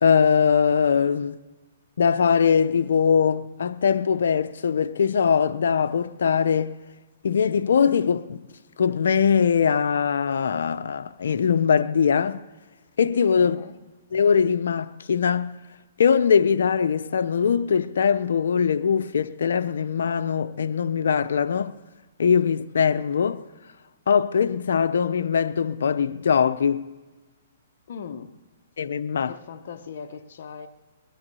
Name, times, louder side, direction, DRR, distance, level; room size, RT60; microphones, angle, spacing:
voice 1, 0.0-1.3 2.0-6.7 7.2-8.4 8.8-12.4 13.0-13.6 14.1-15.5 16.0-21.8 22.2-23.4 24.1-26.9 28.8-29.3, left 7 dB, 75° left, 0.6 m, -21 dB
voice 2, 13.4-13.8 27.9-28.3 29.2-30.7, left 6 dB, 60° left, 1.0 m, -39 dB
20.0 x 10.5 x 6.9 m
hypercardioid pair, 145°, 0 cm